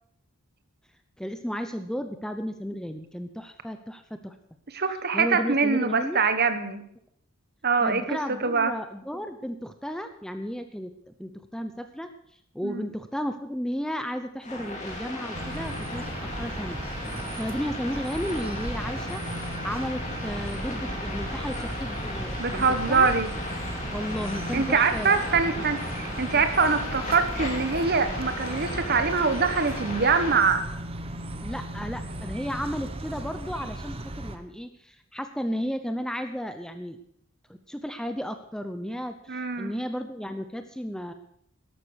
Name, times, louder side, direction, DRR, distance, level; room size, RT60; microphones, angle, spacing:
voice 1, 1.2-4.4 5.1-6.2 7.8-12.1 12.5-16.8 17.4-19.2 19.6-23.1 23.9-25.7 26.3-26.4 31.4-37.0 37.5-41.1, equal, 5° left, 8 dB, 0.7 m, -34 dB
voice 2, 4.7-6.8 7.6-8.7 12.6-12.9 22.4-23.3 24.5-30.6 39.3-39.7, right 4 dB, 45° right, 10 dB, 1.3 m, -24 dB
sound 1, 14.4-30.4, left 1 dB, 35° left, 3.3 m, -36 dB
sound 2, 15.3-34.4, right 1 dB, 25° right, 1.1 m, -36 dB
13.0 x 12.0 x 6.4 m, 0.70 s
head